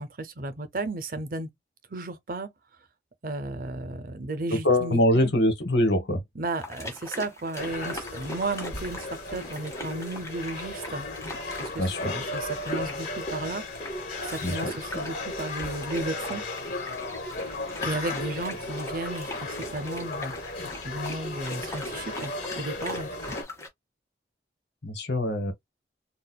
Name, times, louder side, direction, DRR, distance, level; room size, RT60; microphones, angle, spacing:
voice 1, 0.0-1.5 1.9-2.5 3.2-5.3 6.4-11.1 11.6-13.6 14.2-16.4 17.8-22.3 22.6-23.4, right 2 dB, 50° right, 0.6 m, -34 dB
voice 2, 4.5-6.2 11.8-12.1 14.4-15.0 24.8-25.5, left 1 dB, 75° left, 1.2 m, -24 dB
sound 1, 6.6-23.7, left 1 dB, 15° left, 1.0 m, -41 dB
sound 2, 7.6-23.4, left 2 dB, 45° left, 1.8 m, -35 dB
4.1 x 2.4 x 2.2 m
head